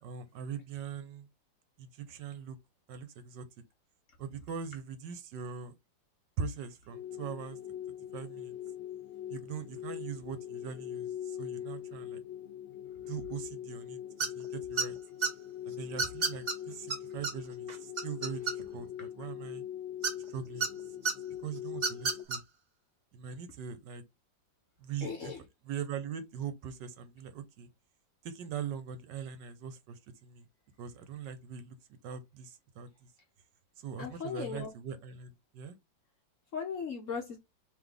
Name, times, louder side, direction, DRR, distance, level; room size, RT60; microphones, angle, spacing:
voice 1, 0.0-1.3 1.8-2.6 2.9-3.5 4.2-5.7 6.4-7.6 8.1-8.5 9.3-12.2 13.1-15.0 15.7-19.6 20.3-20.7 21.4-22.4 23.1-24.0 24.8-27.7 28.2-30.5 30.8-31.8 32.0-32.9 33.8-35.8, right 7 dB, 70° right, 1.3 m, -41 dB
sound 1, 6.9-22.3, left 10 dB, 75° left, 1.1 m, -42 dB
sound 2, 14.2-14.5 14.8-15.3 16.0-16.5 16.9-17.0 17.2-17.3 17.7-18.8 20.0-20.7 21.0-21.1 21.7-22.4, right 5 dB, 50° right, 0.5 m, -30 dB
voice 2, 25.0-25.4 34.0-34.7 36.5-37.4, left 6 dB, 55° left, 0.9 m, -37 dB
3.8 x 3.2 x 3.3 m
omnidirectional pair, 2.1 m